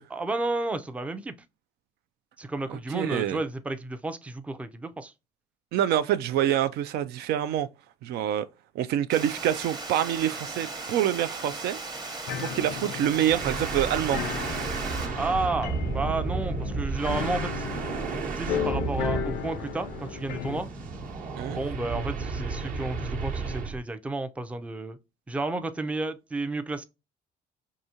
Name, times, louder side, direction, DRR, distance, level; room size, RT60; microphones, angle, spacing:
voice 1, 0.1-1.3 2.4-5.1 15.2-17.7 18.4-20.7 21.5-25.0 25.3-26.8, right 2 dB, 10° right, 0.4 m, -32 dB
voice 2, 2.7-3.4 5.7-7.7 8.0-8.5 8.8-11.8 12.4-14.2 21.4-21.6, right 11 dB, 75° right, 0.4 m, -26 dB
Water, 9.1-15.1, right 3 dB, 25° right, 0.9 m, -37 dB
sound 1, 12.3-20.6, left 8 dB, 80° left, 0.5 m, -35 dB
sound 2, 13.3-23.8, right 4 dB, 55° right, 1.0 m, -32 dB
4.8 x 2.7 x 2.7 m
cardioid pair, 110°, 17 cm